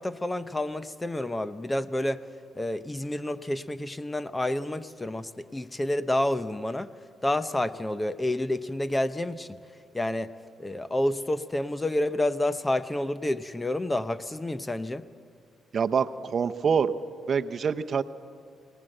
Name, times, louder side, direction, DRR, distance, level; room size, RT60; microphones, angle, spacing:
voice 1, 0.0-2.3 2.5-6.9 7.2-9.5 9.9-10.3 10.6-15.0, left 1 dB, 15° left, 14 dB, 0.7 m, -29 dB
voice 2, 15.7-16.9 17.3-18.0, right 6 dB, 50° right, 9 dB, 0.7 m, -25 dB
23.0 x 19.0 x 7.8 m, 2.2 s
cardioid pair, 90°, 0 cm